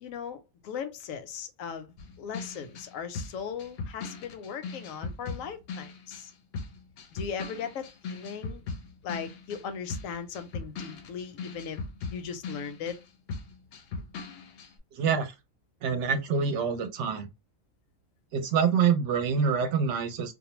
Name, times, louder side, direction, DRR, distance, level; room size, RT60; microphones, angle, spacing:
voice 1, 0.0-6.3 7.1-8.7 9.0-11.8 12.1-13.0, left 7 dB, 85° left, 1.0 m, -38 dB
sound 1, 2.0-6.3 6.5-13.0 13.3-14.7, left 4 dB, 65° left, 0.6 m, -39 dB
voice 2, 14.9-15.3 15.8-17.3 18.3-20.3, right 6 dB, 70° right, 0.8 m, -26 dB
2.4 x 2.0 x 3.0 m
omnidirectional pair, 1.4 m